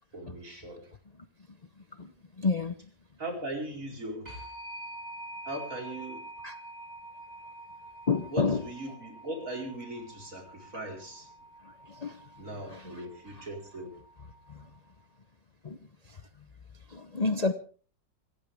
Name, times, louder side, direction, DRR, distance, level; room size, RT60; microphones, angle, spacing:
voice 1, 0.1-0.9 3.2-4.3 5.5-6.3 8.3-11.3 12.4-14.0, right 1 dB, 50° right, 1 dB, 5.0 m, -39 dB
voice 2, 2.4-2.7 6.4-6.5 8.1-8.6 12.0-12.2 14.5-14.6 15.6-15.8 16.9-17.5, left 4 dB, 40° left, 10 dB, 0.6 m, -28 dB
sound 1, 4.3-14.9, right 1 dB, 20° right, 8.0 m, -47 dB
27.0 x 14.0 x 3.5 m, 0.41 s
omnidirectional pair, 1.9 m